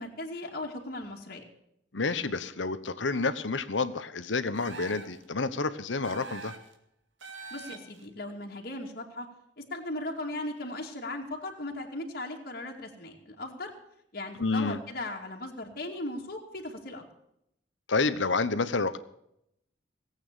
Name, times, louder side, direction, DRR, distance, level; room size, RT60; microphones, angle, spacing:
voice 1, 0.0-1.4 7.5-9.3 9.6-13.7 14.1-17.0, left 1 dB, 50° left, 0 dB, 2.6 m, -37 dB
voice 2, 1.9-6.5 14.4-14.8 17.9-19.0, left 3 dB, 90° left, 13 dB, 1.1 m, -29 dB
sound 1, 4.5-5.2 6.0-6.7 7.2-8.0, right 4 dB, 90° right, 2.2 m, -44 dB
18.5 x 8.8 x 6.9 m, 0.77 s
head